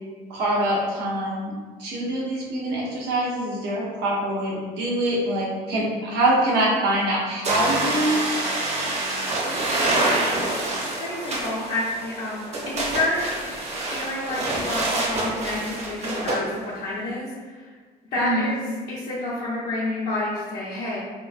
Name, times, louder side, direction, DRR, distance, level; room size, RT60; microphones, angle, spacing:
voice 1, 0.3-1.5 1.8-8.2 18.2-18.5, right 1 dB, 80° right, -4 dB, 0.8 m, -24 dB
sound 1, 7.4-16.4, right 2 dB, 40° right, 0.6 m, -26 dB
voice 2, 11.0-13.2 13.9-17.7 18.1-21.0, left 2 dB, 65° left, -8 dB, 0.6 m, -29 dB
2.9 x 2.5 x 2.3 m, 1.4 s
cardioid pair, 110°, 17 cm